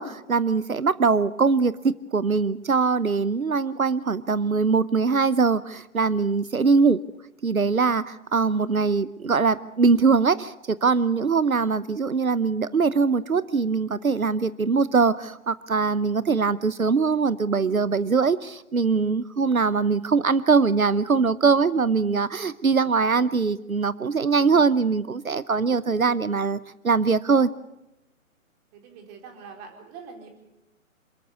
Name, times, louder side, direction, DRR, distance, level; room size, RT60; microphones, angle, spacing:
voice 1, 0.0-7.0 7.4-27.5, right 4 dB, 85° right, 17 dB, 0.9 m, -22 dB
voice 2, 28.7-30.3, right 5 dB, 20° right, 3 dB, 4.3 m, -43 dB
28.0 x 13.5 x 8.4 m, 0.91 s
figure-of-eight pair, 135°, 41 cm